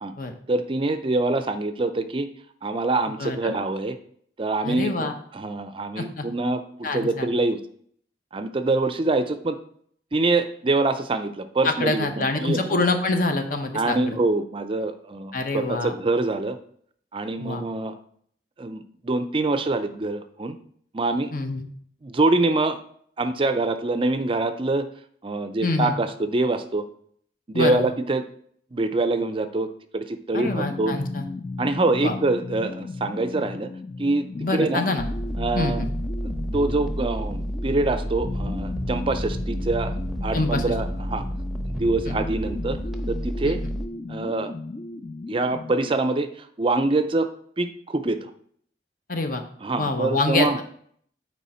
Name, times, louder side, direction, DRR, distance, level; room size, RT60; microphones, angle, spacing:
voice 1, 0.5-2.3 2.6-4.0 4.4-7.6 8.3-9.6 10.1-12.8 13.7-16.6 17.1-17.9 18.6-20.6 20.9-21.3 22.0-22.8 23.2-24.9 25.2-26.8 27.5-28.2 28.7-31.0 31.6-33.7 34.0-34.8 35.4-35.9 36.5-39.9 40.2-41.2 41.8-42.8 43.1-43.6 44.1-44.5 45.3-47.3 47.6-48.3 49.6-50.6, right 2 dB, 30° right, 10 dB, 0.4 m, -25 dB
voice 2, 3.2-3.6 4.6-5.1 6.0-6.3 6.8-7.3 11.6-14.2 15.3-15.9 17.4-17.6 21.3-21.6 25.6-25.9 27.5-27.9 30.3-31.2 32.0-32.2 34.4-35.0 35.5-35.9 40.3-40.6 49.1-49.4 49.8-50.6, left 2 dB, 50° left, 6 dB, 1.0 m, -25 dB
sound 1, 30.4-46.0, left 3 dB, 30° left, 0.3 m, -35 dB
sound 2, 35.0-43.9, equal, ahead, 0.8 m, -30 dB
8.3 x 4.7 x 4.3 m, 0.62 s
head